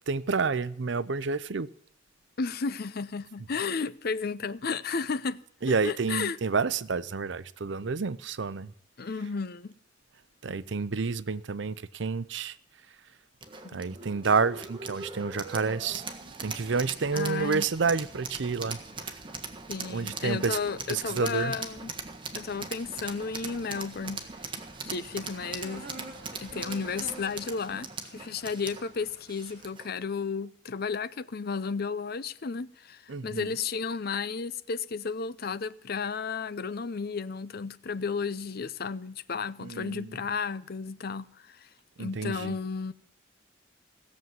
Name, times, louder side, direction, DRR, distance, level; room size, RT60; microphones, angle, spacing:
voice 1, 0.1-1.7 5.6-8.7 10.4-12.6 13.7-16.0 16.4-18.8 19.0-19.1 19.9-20.6 20.9-21.5 33.1-33.5 39.6-40.2 42.0-42.6, right 4 dB, 65° right, 0.6 m, -29 dB
voice 2, 2.4-5.4 5.8-6.4 9.0-9.7 13.6-13.9 17.1-17.7 19.7-21.9 22.3-24.3 24.8-25.9 26.4-41.7 42.0-42.9, left 5 dB, 55° left, 0.6 m, -33 dB
sound 1, 13.4-29.9, right 4 dB, 25° right, 1.5 m, -40 dB
sound 2, 24.5-29.7, right 2 dB, 45° right, 3.2 m, -48 dB
17.0 x 7.4 x 9.3 m
head